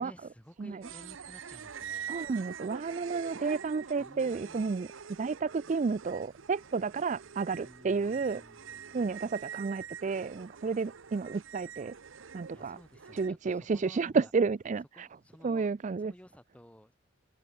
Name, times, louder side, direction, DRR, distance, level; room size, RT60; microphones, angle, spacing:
voice 1, 0.0-2.1 4.0-4.7 7.5-9.1 12.5-14.3 14.9-15.7 16.0-16.9, equal, 5° left, 3.0 m, -54 dB
sound 1, 0.8-13.3, right 7 dB, 65° right, 0.7 m, -45 dB
voice 2, 2.1-4.9 5.2-8.4 8.9-11.9 12.3-12.8 13.1-15.1 15.4-16.1, right 4 dB, 35° right, 0.3 m, -31 dB
head